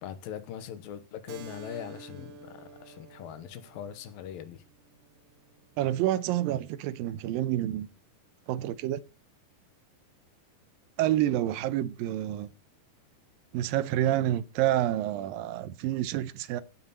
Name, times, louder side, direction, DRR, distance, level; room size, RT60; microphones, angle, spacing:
voice 1, 0.0-4.6, left 9 dB, 80° left, 2.8 m, -41 dB
Keyboard (musical), 1.3-6.4, right 5 dB, 65° right, 1.6 m, -51 dB
voice 2, 5.8-7.9 8.5-9.0 11.0-12.5 13.5-16.6, right 13 dB, 80° right, 2.4 m, -28 dB
16.0 x 7.2 x 4.1 m
omnidirectional pair, 4.2 m